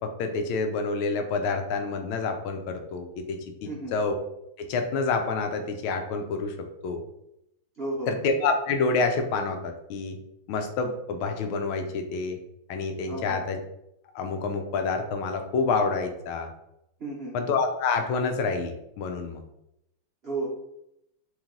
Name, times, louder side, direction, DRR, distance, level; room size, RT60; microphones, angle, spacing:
voice 1, 0.0-4.1 4.6-6.5 6.8-7.0 8.1-10.2 10.5-12.4 12.7-13.6 14.1-16.5 17.3-19.4, left 4 dB, 80° left, 6 dB, 1.4 m, -28 dB
voice 2, 3.6-3.9 7.8-8.1 13.1-13.4 17.0-17.4 20.2-20.5, right 2 dB, 75° right, -5 dB, 0.5 m, -33 dB
3.4 x 3.2 x 3.7 m, 0.82 s
omnidirectional pair, 2.4 m